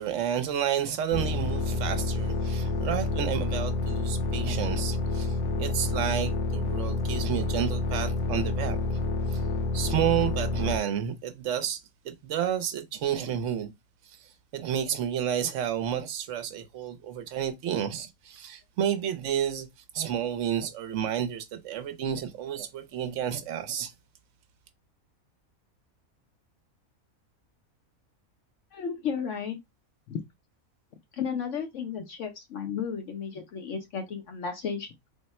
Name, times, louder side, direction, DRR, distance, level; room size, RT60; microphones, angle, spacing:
voice 1, 0.0-9.0 9.3-9.4 9.7-11.8 12.0-13.7 14.1-19.7 19.9-23.9, right 9 dB, 65° right, 0.9 m, -31 dB
sound 1, 1.1-10.8, left 2 dB, 85° left, 1.4 m, -29 dB
voice 2, 28.7-29.6 30.1-30.2 31.2-34.9, left 6 dB, 65° left, 0.9 m, -33 dB
3.5 x 2.1 x 4.1 m
omnidirectional pair, 1.5 m